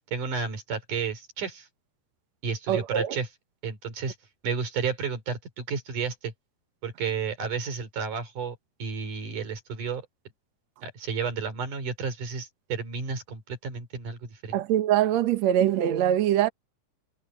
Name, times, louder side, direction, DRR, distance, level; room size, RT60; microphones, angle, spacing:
voice 1, 0.1-1.7 2.4-3.3 3.6-4.2 4.4-6.3 6.8-10.0 10.8-14.6, right 5 dB, 50° right, 5.3 m, -32 dB
voice 2, 2.7-3.2 14.5-16.5, right 11 dB, 75° right, 1.6 m, -23 dB
omnidirectional pair, 4.8 m